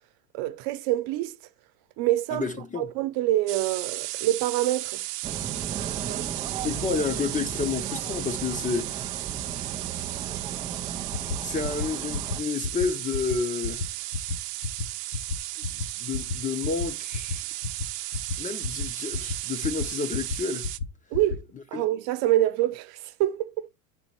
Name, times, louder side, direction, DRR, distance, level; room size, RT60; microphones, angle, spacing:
voice 1, 0.3-1.3 2.0-2.5 2.8-5.0 6.1-6.3 21.1-21.4 21.7-23.7, right 14 dB, 50° right, 0.9 m, -26 dB
voice 2, 2.3-2.9 6.2-6.4 6.6-9.2 11.1-13.9 16.0-17.4 18.4-20.7 21.7-21.8, left 5 dB, 15° left, 0.7 m, -30 dB
sound 1, 3.5-20.8, right 17 dB, 75° right, 0.7 m, -35 dB
sound 2, 5.2-12.4, right 7 dB, 15° right, 0.3 m, -36 dB
sound 3, 11.1-11.4 11.6-11.9 12.1-12.4 12.6-12.9 13.1-13.4 13.6-13.9 14.1-14.4 14.6-14.8 15.1-15.4 15.6-15.8 16.1-16.4 16.6-16.9 17.1-17.4 17.6-17.9 18.1-18.4 18.6-18.9 19.1-19.4 19.6-19.9 20.1-20.4 20.6-20.9 21.1-21.4, left 4 dB, 70° left, 1.1 m, -30 dB
8.9 x 4.2 x 4.3 m
hypercardioid pair, 110°, 48 cm